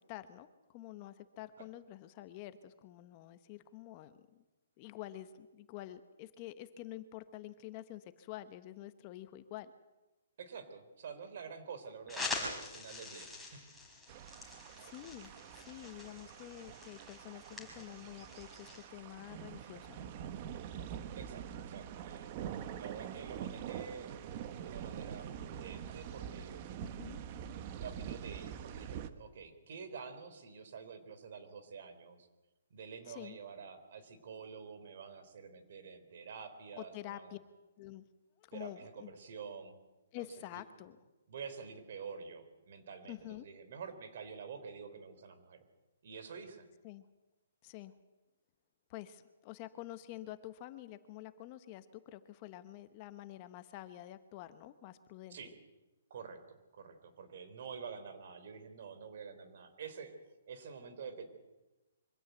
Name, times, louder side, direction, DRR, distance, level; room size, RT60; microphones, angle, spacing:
voice 1, 0.0-4.4 4.8-9.7 14.8-20.1 26.8-27.2 33.1-33.4 36.8-37.4 37.8-38.0 38.4-39.1 40.1-41.0 43.1-43.5 46.8-47.1 47.6-47.9 48.9-55.4, left 14 dB, 30° left, 11 dB, 1.0 m, -48 dB
voice 2, 10.4-13.6 21.2-22.3 22.8-24.1 24.6-26.7 27.8-32.3 32.7-37.4 38.5-39.8 40.2-40.3 40.5-40.6 41.3-45.6 46.0-46.7 55.3-55.5 56.1-60.2 60.5-61.2, right 6 dB, 55° right, 10 dB, 3.5 m, -48 dB
sound 1, 12.1-18.9, left 3 dB, ahead, 4.4 m, -45 dB
sound 2, 14.1-29.1, right 9 dB, 35° right, 1.1 m, -45 dB
24.5 x 16.0 x 8.1 m, 1.1 s
hypercardioid pair, 160°, 0 cm